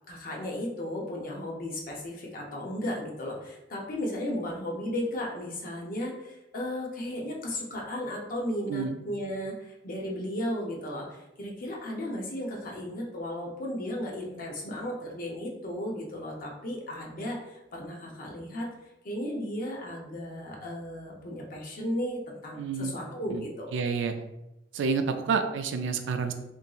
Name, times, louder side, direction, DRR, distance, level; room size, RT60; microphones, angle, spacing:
voice 1, 0.1-18.7 19.0-23.7, left 1 dB, 50° left, 0 dB, 0.6 m, -35 dB
voice 2, 22.6-22.9 23.3-23.5 23.7-24.1 24.7-26.3, right 5 dB, 80° right, 8 dB, 0.3 m, -29 dB
2.8 x 2.6 x 2.3 m, 0.92 s
head